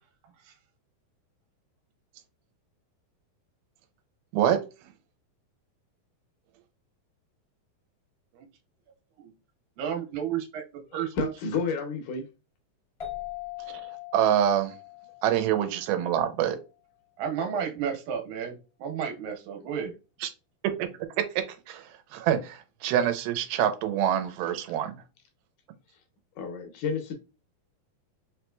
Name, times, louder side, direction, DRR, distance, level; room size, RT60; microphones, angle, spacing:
voice 1, 9.8-11.3 17.2-20.0, right 8 dB, 75° right, 2.6 m, -32 dB
voice 2, 10.9-12.3 26.4-27.1, left 4 dB, 75° left, 2.0 m, -31 dB
sound 1, 13.0-16.3, left 14 dB, 45° left, 0.7 m, -41 dB
voice 3, 14.1-14.8 15.2-16.6 20.2-20.3 20.6-20.9 21.7-24.9, right 10 dB, 90° right, 2.6 m, -25 dB
5.6 x 3.0 x 2.2 m
omnidirectional pair, 4.2 m